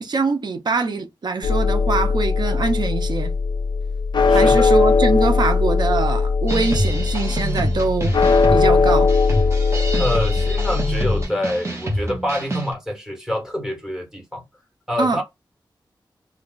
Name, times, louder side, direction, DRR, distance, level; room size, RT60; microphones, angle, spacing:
voice 1, 0.0-3.4 4.3-9.1 15.0-15.2, right 4 dB, 65° right, 0.6 m, -23 dB
sound 1, 1.4-11.2, left 4 dB, 65° left, 0.4 m, -19 dB
voice 2, 4.3-4.7 10.0-14.4 14.9-15.2, left 1 dB, 5° right, 1.2 m, -26 dB
sound 2, 6.5-12.7, right 1 dB, 35° right, 0.9 m, -26 dB
2.3 x 2.3 x 3.7 m
wide cardioid pair, 115°, 8 cm